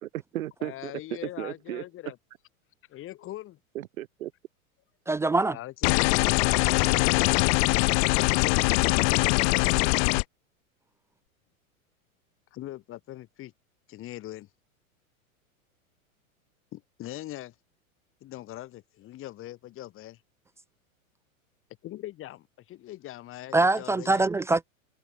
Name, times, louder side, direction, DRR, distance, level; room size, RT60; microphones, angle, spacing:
voice 1, 0.0-0.9 1.2-1.8 3.7-4.3, right 14 dB, 75° right, 2.1 m, -35 dB
voice 2, 0.6-2.2 2.9-3.6 5.5-7.3 8.2-10.0 12.5-13.5 13.9-14.5 16.7-17.5 18.2-20.2 21.8-24.3, left 15 dB, 30° left, 1.4 m, -41 dB
voice 3, 5.1-5.6 23.5-24.7, right 2 dB, 5° right, 0.4 m, -23 dB
sound 1, 5.8-10.2, left 33 dB, 45° left, 0.7 m, -22 dB
hypercardioid pair, 120°, 41 cm